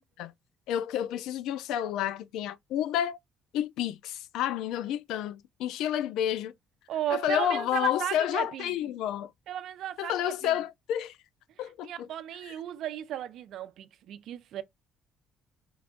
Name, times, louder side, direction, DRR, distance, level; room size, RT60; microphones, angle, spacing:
voice 1, 0.7-3.2 3.5-6.5 7.1-9.3 10.0-11.2 11.6-12.1 12.5-12.6, left 10 dB, 85° left, 0.4 m, -30 dB
voice 2, 6.9-8.7 9.5-10.6 11.6-14.6, right 11 dB, 60° right, 0.6 m, -35 dB
4.7 x 2.5 x 3.5 m
cardioid pair, 160°, 0 cm